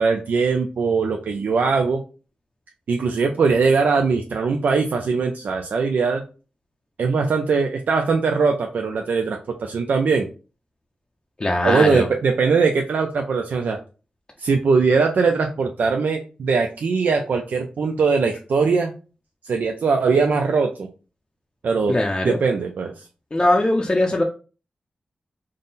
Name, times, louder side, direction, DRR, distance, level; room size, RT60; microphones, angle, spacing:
voice 1, 0.0-2.0 2.9-6.2 7.0-10.3 11.6-13.8 14.4-18.9 19.4-20.9 21.6-22.0 22.2-23.0, right 4 dB, 80° right, 3 dB, 0.4 m, -21 dB
voice 2, 11.4-12.1 21.9-22.4 23.3-24.2, left 1 dB, 30° left, 1 dB, 0.5 m, -20 dB
3.7 x 2.0 x 3.9 m, 0.35 s
wide cardioid pair, 85°, 3 cm